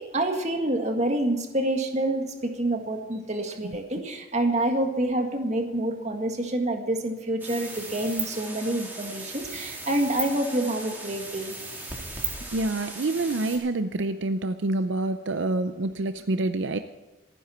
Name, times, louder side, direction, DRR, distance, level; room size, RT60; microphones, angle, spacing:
voice 1, 0.0-11.5, right 1 dB, 35° right, 4 dB, 1.8 m, -27 dB
sound 1, 7.4-13.6, right 3 dB, 10° right, 3.5 m, -37 dB
voice 2, 12.5-16.8, right 2 dB, 75° right, 9 dB, 0.6 m, -27 dB
28.0 x 10.0 x 4.4 m, 1.2 s
head